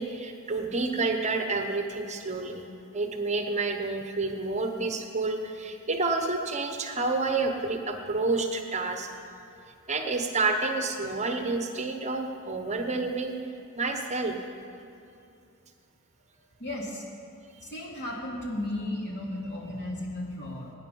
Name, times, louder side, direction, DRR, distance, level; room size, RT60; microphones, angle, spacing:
voice 1, 0.0-2.7 2.9-9.2 9.9-13.4 13.8-14.4, right 3 dB, 30° right, 4 dB, 1.0 m, -29 dB
voice 2, 16.6-17.0 17.6-20.7, left 1 dB, 55° left, -2 dB, 2.6 m, -34 dB
19.0 x 9.9 x 5.4 m, 2.5 s
head